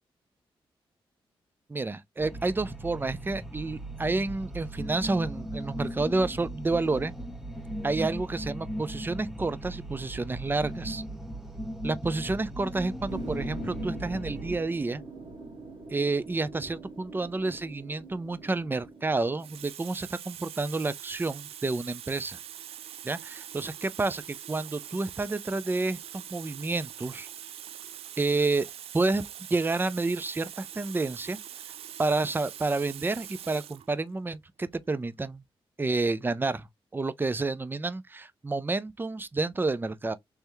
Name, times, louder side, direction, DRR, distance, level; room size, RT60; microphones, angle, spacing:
voice 1, 1.7-7.1 7.8-11.0 11.8-15.0 15.9-22.4 23.0-27.3 28.2-28.7 28.9-29.2 29.5-31.4 32.0-35.4 35.8-36.7 36.9-40.1, right 3 dB, 20° right, 0.5 m, -29 dB
sound 1, 2.2-14.6, right 1 dB, 5° right, 0.9 m, -38 dB
sound 2, 13.1-19.6, right 2 dB, 55° right, 2.2 m, -44 dB
Water tap faucet, 18.6-18.8 19.4-33.9 34.8-35.0, right 10 dB, 90° right, 0.4 m, -43 dB
3.4 x 3.3 x 3.0 m
cardioid pair, 70°, 10 cm